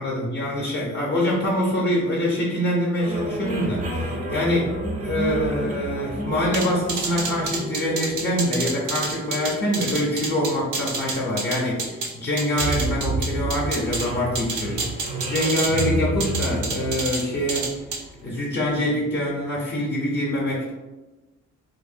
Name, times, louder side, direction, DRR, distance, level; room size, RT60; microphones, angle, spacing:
voice 1, 0.0-4.7 5.0-17.7 18.2-20.7, left 1 dB, 35° left, -5 dB, 0.6 m, -25 dB
sound 1, 3.0-18.4, right 1 dB, 25° right, 0.5 m, -31 dB
sound 2, 6.5-12.1 12.4-14.0 14.3-15.9 16.2-17.2 17.5-18.0, right 4 dB, 80° right, 0.6 m, -28 dB
3.3 x 2.0 x 2.5 m, 1.1 s
cardioid pair, 90°, 30 cm